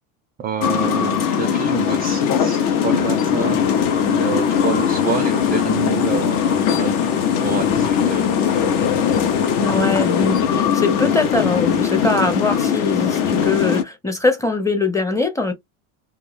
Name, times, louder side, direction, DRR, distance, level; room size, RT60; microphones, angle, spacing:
voice 1, 0.4-3.6 4.1-8.2 8.5-8.6, right 8 dB, 25° right, 0.4 m, -28 dB
sound 1, 0.6-13.8, left 7 dB, 55° left, 0.8 m, -20 dB
sound 2, 4.6-10.3, left 6 dB, 75° left, 1.0 m, -34 dB
voice 2, 9.6-15.5, left 3 dB, 10° left, 0.7 m, -22 dB
2.3 x 2.2 x 3.2 m
hypercardioid pair, 85°, 41 cm